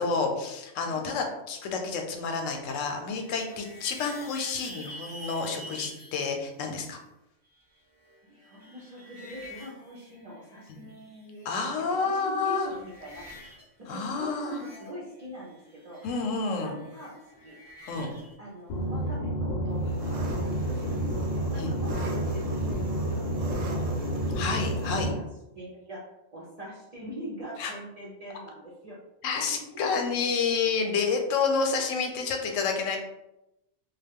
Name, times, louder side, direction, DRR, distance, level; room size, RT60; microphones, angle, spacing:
voice 1, 0.0-7.0 11.5-12.7 13.9-14.6 16.0-16.8 17.9-18.1 21.6-21.7 24.3-25.1 27.6-27.7 29.2-33.0, left 4 dB, 90° left, 3 dB, 0.9 m, -29 dB
sound 1, 2.8-6.2 7.6-11.0 11.2-12.0 12.3-13.7 13.9-18.3, equal, 10° left, 0.7 m, -48 dB
voice 2, 8.3-13.2 13.9-16.0 16.6-17.5 18.0-18.1 18.4-24.6 24.9-25.2 25.5-26.1 26.3-29.0 29.3-29.4 29.8-30.0, equal, 50° right, -6 dB, 0.5 m, -43 dB
sound 2, 18.7-25.1, right 1 dB, 60° left, 0.7 m, -30 dB
Engine, 19.8-25.1, right 2 dB, 90° right, 1.0 m, -40 dB
2.3 x 2.2 x 3.5 m, 0.90 s
omnidirectional pair, 1.3 m